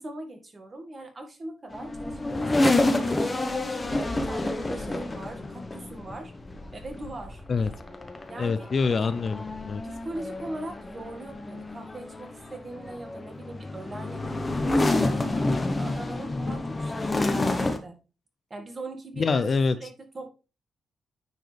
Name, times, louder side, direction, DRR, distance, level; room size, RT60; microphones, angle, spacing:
voice 1, 0.0-6.3 6.7-7.4 8.3-8.7 9.8-18.0 18.5-19.5 19.8-20.3, right 2 dB, 35° right, 4 dB, 1.9 m, -40 dB
sound 1, 1.7-17.8, left 2 dB, 25° left, 1.1 m, -29 dB
voice 2, 8.4-9.8 19.2-19.8, left 4 dB, 45° left, 12 dB, 0.6 m, -25 dB
9.4 x 4.6 x 3.4 m, 0.33 s
cardioid pair, 100°, 0 cm